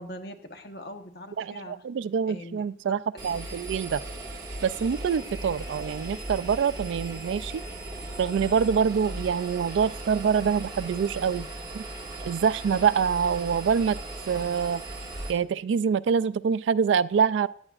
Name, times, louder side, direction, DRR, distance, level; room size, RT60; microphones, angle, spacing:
voice 1, 0.0-1.8 2.3-3.3, left 1 dB, 55° left, 6 dB, 1.0 m, -42 dB
voice 2, 1.4-4.0 4.6-7.5 8.2-11.5 11.7-11.8 12.2-14.0 14.3-14.8 15.3-17.5, right 6 dB, 80° right, 18 dB, 0.3 m, -25 dB
Engine, 3.2-15.3, right 1 dB, 20° right, 1.7 m, -38 dB
14.5 x 9.8 x 2.4 m, 0.62 s
head